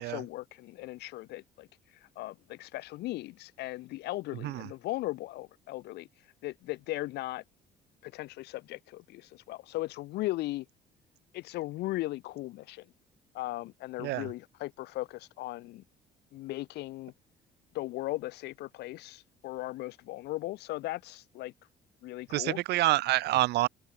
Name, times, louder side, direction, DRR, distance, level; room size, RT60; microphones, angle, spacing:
voice 1, 0.0-1.7 2.0-6.1 6.4-7.4 8.0-10.7 11.3-12.9 13.3-15.8 16.3-17.1 17.7-21.5 22.0-22.6, left 17 dB, 80° left, 1.9 m, -37 dB
voice 2, 14.0-14.3 22.3-23.7, right 17 dB, 75° right, 1.2 m, -27 dB
cardioid pair, 110°, 17 cm